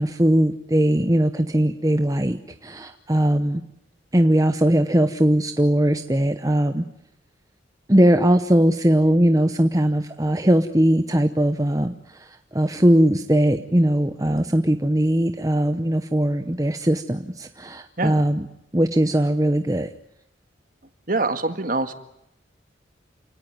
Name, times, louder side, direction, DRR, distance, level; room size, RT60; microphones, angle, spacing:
voice 1, 0.0-3.6 4.1-6.8 7.9-18.4 18.7-19.9, right 1 dB, 20° right, 8 dB, 0.9 m, -20 dB
voice 2, 21.1-21.9, right 2 dB, 45° right, 9 dB, 1.8 m, -24 dB
29.0 x 18.0 x 9.6 m, 0.81 s
head